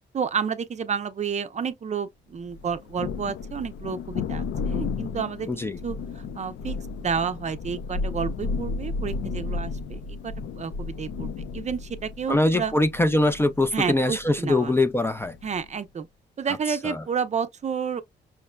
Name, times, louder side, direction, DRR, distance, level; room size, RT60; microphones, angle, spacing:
voice 1, 0.1-5.5 5.8-12.7 13.7-14.7 15.4-16.1 16.4-18.0, right 6 dB, 40° right, 0.5 m, -30 dB
Thunder, 2.5-15.7, left 4 dB, 75° left, 0.4 m, -33 dB
voice 2, 5.5-5.8 12.3-15.4 16.8-17.0, left 2 dB, 15° left, 0.4 m, -23 dB
5.7 x 2.1 x 2.2 m
cardioid pair, 80°, 19 cm